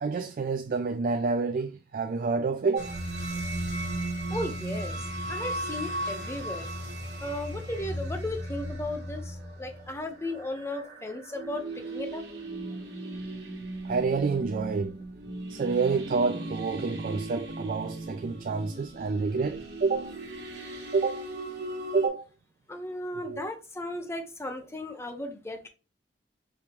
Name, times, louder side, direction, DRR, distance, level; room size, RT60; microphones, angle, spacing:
voice 1, 0.0-3.0 13.8-15.0 15.5-20.1 20.9-21.2 21.9-22.3 23.1-23.4, right 4 dB, 50° right, 0.3 m, -28 dB
sound 1, 2.8-22.1, right 1 dB, 70° right, 1.3 m, -36 dB
voice 2, 4.3-6.7 7.2-12.2 22.7-25.7, left 1 dB, 15° left, 0.7 m, -36 dB
5.0 x 3.0 x 3.0 m
head